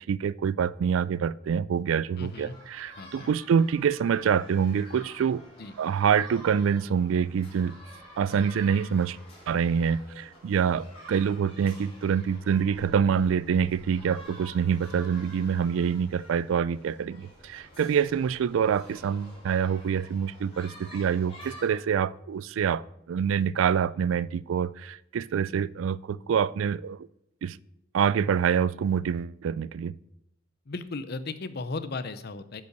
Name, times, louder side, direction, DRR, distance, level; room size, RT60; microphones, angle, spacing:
voice 1, 0.1-5.4 5.8-7.7 8.2-9.2 9.5-22.8 23.1-27.1 27.4-27.6 27.9-29.9, right 7 dB, 85° right, 0.3 m, -26 dB
sound 1, 2.1-21.8, equal, 30° left, 4.4 m, -49 dB
voice 2, 2.2-2.6 3.0-3.3 5.6-5.7 30.7-32.6, left 3 dB, 55° left, 0.7 m, -36 dB
10.5 x 5.5 x 6.7 m
head